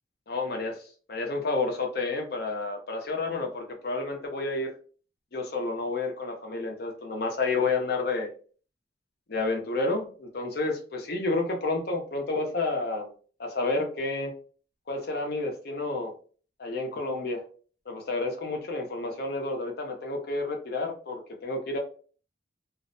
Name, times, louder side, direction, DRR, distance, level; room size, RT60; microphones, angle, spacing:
voice 1, 0.3-0.8 1.1-4.7 5.3-8.3 9.3-13.1 13.4-14.3 14.9-16.1 16.6-17.4 17.9-21.8, left 3 dB, 60° left, 3 dB, 0.7 m, -30 dB
2.5 x 2.0 x 2.5 m, 0.40 s
head